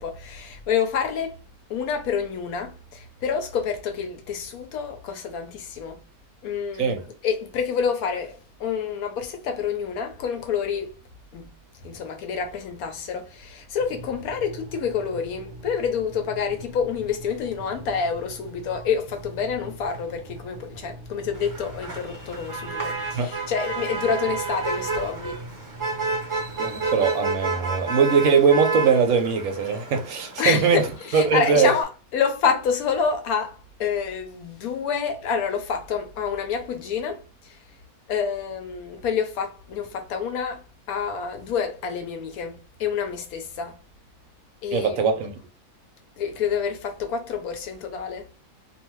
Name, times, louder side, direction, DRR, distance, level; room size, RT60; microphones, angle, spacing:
voice 1, 0.0-1.3 1.7-6.0 6.4-7.0 7.2-10.9 11.3-11.5 11.8-25.4 30.4-37.2 38.1-40.6 40.9-43.8 44.6-44.9 46.2-48.3, left 6 dB, 75° left, 1.1 m, -28 dB
sound 1, 13.8-26.9, right 2 dB, 40° right, 0.8 m, -43 dB
Motor vehicle (road), 21.3-31.8, right 4 dB, 25° right, 0.4 m, -31 dB
voice 2, 26.6-31.7 44.7-45.3, right 5 dB, 70° right, 0.9 m, -21 dB
2.6 x 2.3 x 2.9 m
omnidirectional pair, 1.6 m